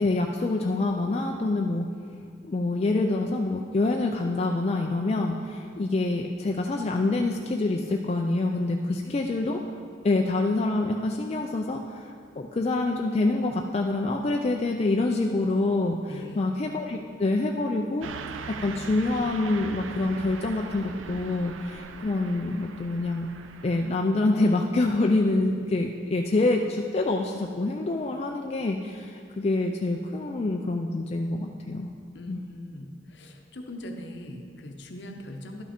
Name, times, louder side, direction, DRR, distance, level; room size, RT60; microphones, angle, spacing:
voice 1, 0.0-1.9 2.4-9.6 10.0-18.1 18.5-23.3 23.6-31.9 32.3-32.4, left 2 dB, 30° left, 1 dB, 0.3 m, -26 dB
voice 2, 8.8-9.2 16.1-16.4 32.1-35.6, left 1 dB, 60° left, 4 dB, 0.8 m, -41 dB
Car passing by / Truck, 18.0-23.9, right 5 dB, 85° right, 0.5 m, -41 dB
11.5 x 5.8 x 4.3 m, 2.2 s
head